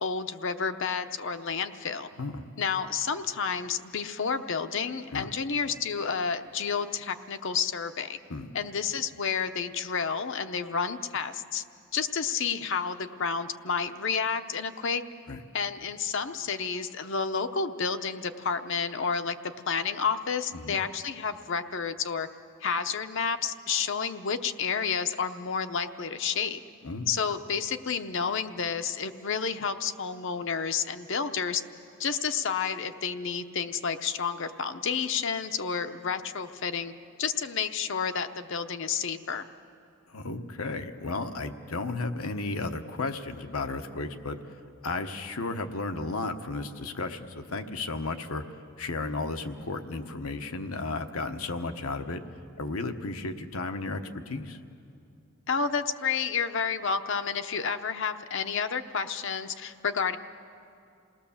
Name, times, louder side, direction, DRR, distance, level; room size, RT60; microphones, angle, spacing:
voice 1, 0.0-2.1 2.6-8.2 8.5-11.6 11.9-15.0 15.5-19.4 19.7-22.3 22.6-26.6 27.1-31.6 32.0-36.9 37.2-39.5 55.5-60.2, left 6 dB, 60° left, 9 dB, 0.8 m, -30 dB
voice 2, 40.1-44.4 44.8-48.4 48.8-52.2 52.6-54.6, left 3 dB, 85° left, 7 dB, 1.1 m, -34 dB
28.0 x 18.5 x 7.2 m, 2.6 s
head